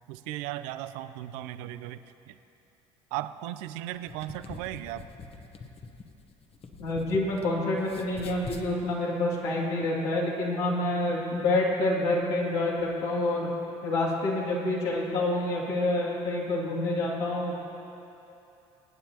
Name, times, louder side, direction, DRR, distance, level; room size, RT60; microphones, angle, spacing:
voice 1, 0.1-2.0 2.3-2.4 3.1-5.0, right 14 dB, 80° right, 12 dB, 0.5 m, -36 dB
sound 1, 3.9-7.5 7.8-8.7, left 4 dB, 40° left, 1.1 m, -44 dB
voice 2, 6.8-13.5 13.8-17.6, left 2 dB, 80° left, -4 dB, 2.5 m, -27 dB
26.0 x 9.1 x 2.9 m, 2.8 s
hypercardioid pair, 70°, 15 cm